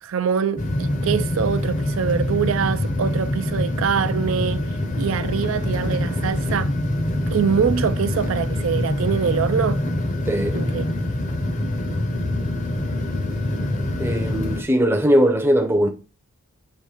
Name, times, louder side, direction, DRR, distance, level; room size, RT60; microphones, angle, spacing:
voice 1, 0.0-6.7 7.3-9.8 10.5-11.2, right 7 dB, 65° right, 0.4 m, -24 dB
sound 1, 0.6-14.6, left 1 dB, 35° left, 0.7 m, -25 dB
voice 2, 10.3-10.6 14.0-15.9, equal, 10° right, 0.6 m, -19 dB
6.9 x 3.1 x 4.8 m
head